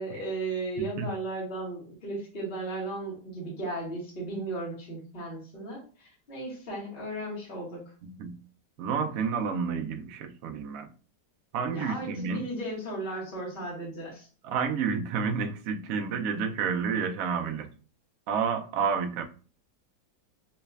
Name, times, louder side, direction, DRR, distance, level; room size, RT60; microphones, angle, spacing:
voice 1, 0.0-7.8 11.7-14.3, right 2 dB, 35° left, 1.7 m, -35 dB
voice 2, 8.0-8.4 8.8-10.9 11.5-12.4 14.4-17.7 18.3-19.2, right 6 dB, 70° right, 0.9 m, -30 dB
4.0 x 3.0 x 2.3 m
omnidirectional pair, 1.7 m